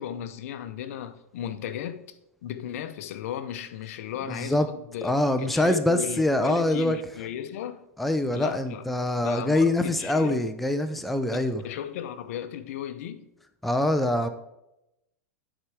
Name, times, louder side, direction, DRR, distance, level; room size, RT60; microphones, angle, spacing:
voice 1, 0.0-2.2 2.4-7.8 8.3-8.8 9.1-10.5 11.3-13.3, left 10 dB, 65° left, 0.7 m, -36 dB
voice 2, 4.3-4.7 5.0-7.0 8.0-11.6 13.6-14.3, left 1 dB, ahead, 0.4 m, -24 dB
10.0 x 4.4 x 4.7 m
supercardioid pair, 135°, 8 cm